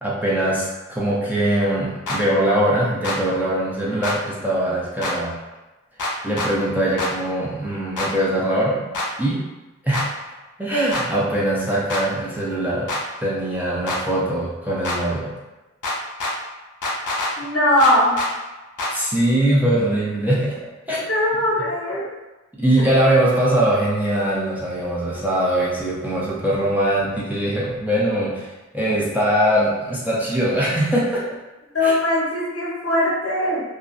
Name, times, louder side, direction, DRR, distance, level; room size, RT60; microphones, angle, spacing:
voice 1, 0.0-5.3 6.2-8.8 9.2-9.4 9.8-10.1 10.6-12.9 13.2-15.3 18.9-20.6 20.9-21.1 22.6-31.2 31.8-31.9, right 1 dB, 5° right, -6 dB, 0.6 m, -21 dB
sound 1, 2.1-2.2 3.0-3.2 4.0-4.2 5.0-5.1 6.0-6.5 7.0-7.1 8.0-8.1 8.9-9.1 9.9-10.1 10.9-11.1 11.9-12.0 12.9-13.0 13.9-14.0 14.8-15.0 15.8-16.3 16.8-17.3 17.8-18.3 18.8-18.9, left 2 dB, 85° left, 0.5 m, -25 dB
voice 2, 17.4-18.2 21.1-22.1 31.7-33.6, left 1 dB, 50° left, -6 dB, 0.8 m, -20 dB
2.3 x 2.1 x 2.5 m, 1.1 s
wide cardioid pair, 40°, 30 cm